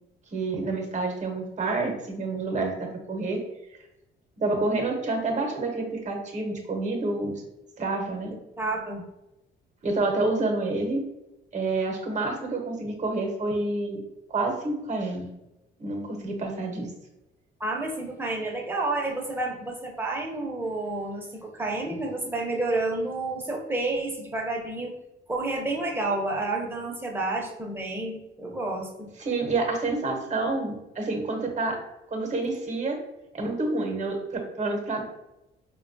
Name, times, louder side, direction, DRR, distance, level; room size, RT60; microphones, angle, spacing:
voice 1, 0.3-3.4 4.4-7.4 7.8-8.3 9.8-11.0 11.5-14.0 14.3-15.3 15.8-16.9 29.2-31.8 32.1-33.0 33.3-35.0, right 2 dB, 35° right, 2 dB, 0.9 m, -28 dB
voice 2, 8.6-9.0 17.6-24.9 25.3-29.1, right 2 dB, 10° right, -1 dB, 0.8 m, -30 dB
4.1 x 2.3 x 2.6 m, 0.93 s
cardioid pair, 90°, 20 cm